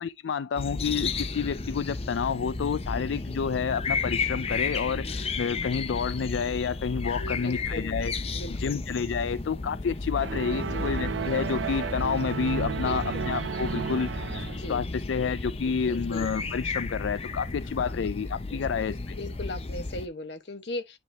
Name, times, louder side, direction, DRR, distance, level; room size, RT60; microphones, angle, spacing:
voice 1, 0.0-8.1 8.6-14.3 14.7-19.2, left 6 dB, 85° left, 0.4 m, -29 dB
sound 1, 0.5-20.1, left 3 dB, 30° left, 0.7 m, -33 dB
voice 2, 7.2-7.9 8.3-8.8 10.5-11.1 12.7-13.3 14.5-14.8 15.6-16.3 17.8-18.1 18.5-18.6 19.2-21.0, left 1 dB, 65° left, 1.2 m, -39 dB
sound 2, 10.2-14.8, right 6 dB, 80° right, 0.5 m, -33 dB
9.9 x 3.5 x 2.7 m
head